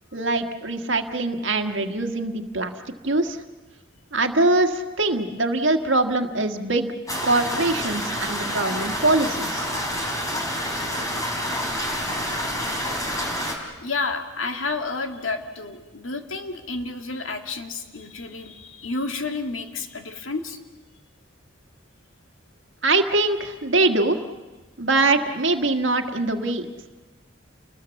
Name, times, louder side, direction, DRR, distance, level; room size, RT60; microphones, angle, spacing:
voice 1, 0.1-2.7 3.0-3.4 4.1-6.9 7.2-9.7 22.8-24.2 24.8-26.9, right 2 dB, 65° right, 5 dB, 1.6 m, -23 dB
sound 1, 7.1-13.5, equal, 20° left, 3.6 m, -28 dB
voice 2, 13.8-20.6, left 3 dB, 85° left, 5 dB, 2.0 m, -30 dB
29.0 x 20.5 x 7.1 m, 1.2 s
head